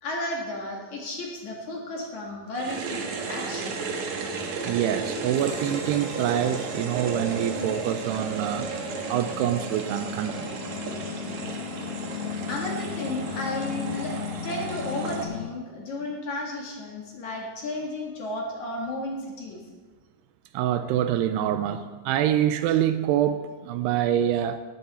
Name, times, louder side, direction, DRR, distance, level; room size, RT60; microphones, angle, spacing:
voice 1, 0.0-3.9 12.5-14.2 14.4-19.6, left 1 dB, 50° left, -1 dB, 2.7 m, -33 dB
sound 1, 2.5-15.2, right 4 dB, 55° right, 2.2 m, -33 dB
voice 2, 4.6-10.6 20.5-24.6, right 11 dB, 80° right, 11 dB, 2.6 m, -26 dB
sound 2, 5.4-15.5, left 12 dB, 80° left, 2.5 m, -37 dB
18.5 x 14.0 x 4.2 m, 1.4 s
omnidirectional pair, 5.0 m